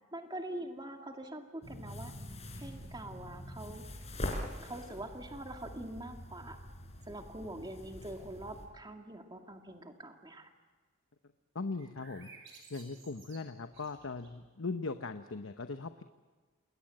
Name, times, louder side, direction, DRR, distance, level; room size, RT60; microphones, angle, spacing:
voice 1, 0.1-2.1 2.6-3.8 4.4-6.7 7.0-10.5, right 1 dB, 20° right, 4 dB, 2.2 m, -44 dB
sound 1, 1.6-8.7, left 1 dB, 35° left, 4.2 m, -44 dB
voice 2, 11.5-12.3 12.7-16.0, left 3 dB, 80° left, 8 dB, 0.9 m, -39 dB
sound 2, 11.7-14.5, right 4 dB, 70° right, 6.1 m, -56 dB
28.5 x 20.5 x 7.8 m, 1.4 s
head